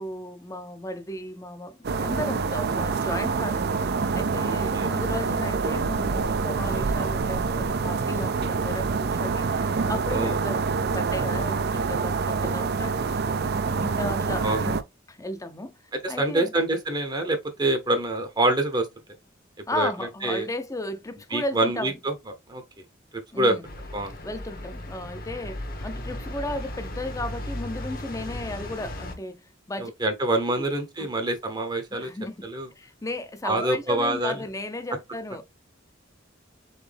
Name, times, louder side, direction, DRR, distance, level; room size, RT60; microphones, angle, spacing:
voice 1, 0.0-13.3 13.8-14.8 15.1-15.7 16.1-16.5 19.7-22.0 23.3-23.6 24.2-29.9 30.5-30.6 31.0-31.1 32.0-32.5 32.8-35.4, left 1 dB, 15° left, 0.6 m, -35 dB
sound 1, 1.8-14.8, right 4 dB, 55° right, 0.5 m, -26 dB
voice 2, 4.4-4.9 10.1-10.4 14.4-14.6 16.0-18.9 19.7-19.9 20.2-20.5 21.3-22.1 22.5-22.6 23.4-23.6 23.9-24.2 29.8-32.1 32.4-32.7 33.4-34.4, right 1 dB, 20° right, 0.8 m, -26 dB
sound 2, 23.6-29.1, left 1 dB, 50° left, 1.2 m, -36 dB
4.1 x 3.8 x 3.3 m
head